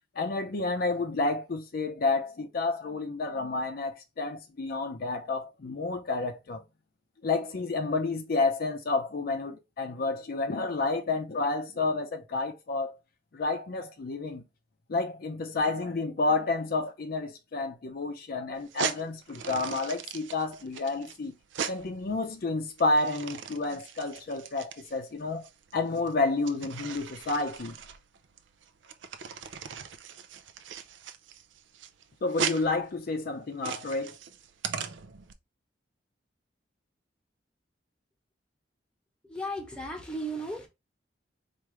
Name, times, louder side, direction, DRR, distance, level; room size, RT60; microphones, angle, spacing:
voice 1, 0.1-6.6 7.2-13.0 13.3-14.4 14.9-21.3 21.7-25.5 25.7-27.7 32.2-34.2, left 3 dB, 55° left, 0.5 m, -30 dB
sound 1, 18.6-35.3, right 7 dB, 85° right, 0.5 m, -39 dB
voice 2, 39.2-40.7, right 1 dB, 5° left, 1.0 m, -35 dB
4.6 x 2.5 x 3.0 m
head